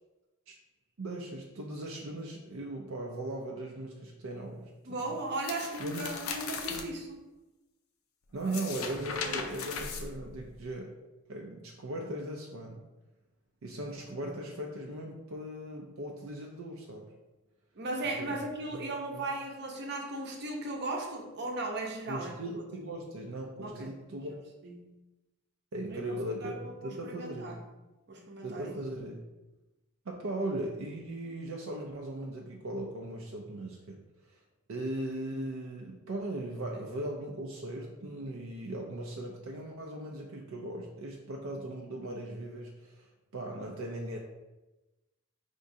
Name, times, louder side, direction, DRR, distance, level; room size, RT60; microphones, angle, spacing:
voice 1, 1.0-5.2 5.8-6.0 6.7-6.9 8.3-10.9 11.3-12.8 13.6-17.1 18.0-18.3 18.7-18.8 19.1-19.2 22.1-24.4 25.7-27.5 28.4-29.2 30.1-34.4 34.7-44.2, right 1 dB, 80° right, 0 dB, 0.5 m, -38 dB
voice 2, 4.9-7.2 8.4-8.6 9.2-9.5 14.2-14.4 17.7-22.6 23.6-23.9 24.6-24.9 25.9-27.6 28.1-28.7, right 2 dB, 55° right, 0 dB, 0.8 m, -37 dB
sound 1, 5.4-6.8 8.3-10.6, left 5 dB, 90° left, 0.5 m, -38 dB
5.1 x 3.5 x 2.7 m, 1.1 s
head